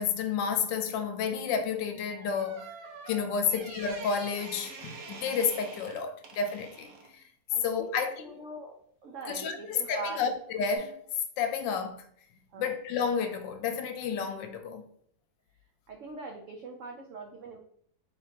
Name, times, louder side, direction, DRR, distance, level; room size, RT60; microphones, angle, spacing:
voice 1, 0.0-2.7 3.1-6.9 7.6-8.2 9.3-11.0 11.4-12.0 12.6-14.8, left 6 dB, 80° left, 1.3 m, -31 dB
sound 1, 1.9-7.1 9.8-10.1 10.6-10.8, right 4 dB, 60° right, 1.0 m, -46 dB
voice 2, 7.5-8.7 9.0-10.3 12.5-12.8 15.9-17.6, right 3 dB, 90° right, 0.6 m, -42 dB
3.6 x 2.8 x 4.2 m
omnidirectional pair, 2.0 m